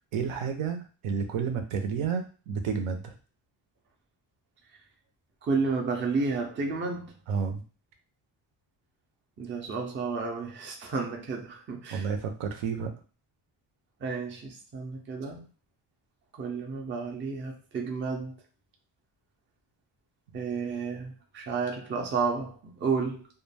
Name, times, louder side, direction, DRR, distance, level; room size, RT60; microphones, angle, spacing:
voice 1, 0.1-3.1 7.3-7.6 11.9-12.9, right 6 dB, 90° right, 6 dB, 0.7 m, -31 dB
voice 2, 5.4-7.1 9.4-12.1 14.0-15.4 16.4-18.3 20.3-23.3, right 4 dB, 25° right, 1 dB, 0.4 m, -31 dB
2.3 x 2.2 x 3.2 m, 0.36 s
cardioid pair, 180°, 48 cm